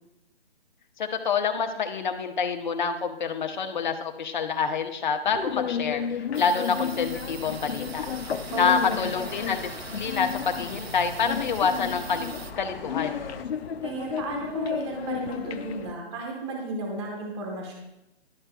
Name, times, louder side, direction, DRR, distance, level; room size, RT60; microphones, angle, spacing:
voice 1, 1.0-8.1 8.6-13.2, left 5 dB, 50° left, 6 dB, 0.9 m, -27 dB
sound 1, 5.3-15.9, left 8 dB, 80° left, 0.6 m, -33 dB
sound 2, 6.3-12.5, right 6 dB, 75° right, 0.8 m, -43 dB
sound 3, 6.7-13.4, left 3 dB, 65° left, 1.2 m, -42 dB
voice 2, 8.5-9.1 13.8-17.7, right 2 dB, 25° right, 0 dB, 1.2 m, -34 dB
12.0 x 5.8 x 2.2 m, 0.89 s
hypercardioid pair, 160°, 31 cm